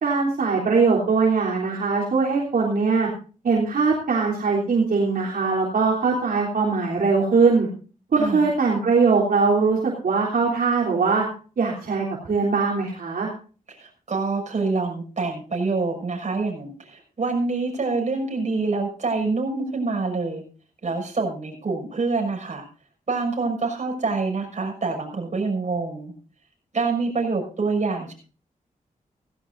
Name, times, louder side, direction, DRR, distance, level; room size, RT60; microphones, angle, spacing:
voice 1, 0.0-3.1 3.4-7.7 8.1-11.2 11.6-13.3, right 4 dB, 70° right, -4 dB, 3.6 m, -21 dB
voice 2, 8.2-8.5 13.7-20.4 20.8-22.6 23.1-26.1 26.7-28.1, right 3 dB, 50° right, 1 dB, 6.1 m, -26 dB
17.0 x 16.0 x 2.7 m, 0.38 s
cardioid pair, 80°, 15 cm